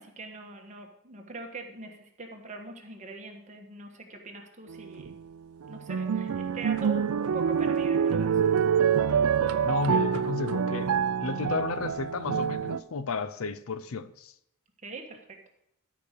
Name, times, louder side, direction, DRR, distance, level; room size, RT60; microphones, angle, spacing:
voice 1, 0.0-5.2 5.7-8.5 14.8-15.5, right 3 dB, 35° right, 3 dB, 1.5 m, -42 dB
sound 1, 4.7-5.1 5.6-12.8, right 7 dB, 80° right, 0.4 m, -26 dB
voice 2, 9.6-14.3, left 4 dB, 70° left, 14 dB, 0.5 m, -33 dB
11.5 x 5.1 x 6.6 m, 0.78 s
head